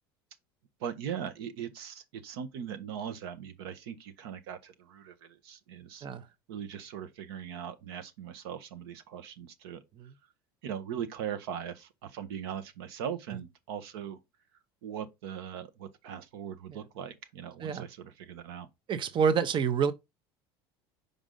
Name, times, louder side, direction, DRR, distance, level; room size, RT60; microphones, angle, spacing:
voice 1, 0.8-6.0 6.5-9.8 10.6-14.2 14.8-18.7, right 8 dB, 80° right, 1.1 m, -40 dB
voice 2, 18.9-19.9, right 6 dB, 40° right, 0.8 m, -28 dB
5.2 x 5.0 x 3.8 m
hypercardioid pair, 85°, 13 cm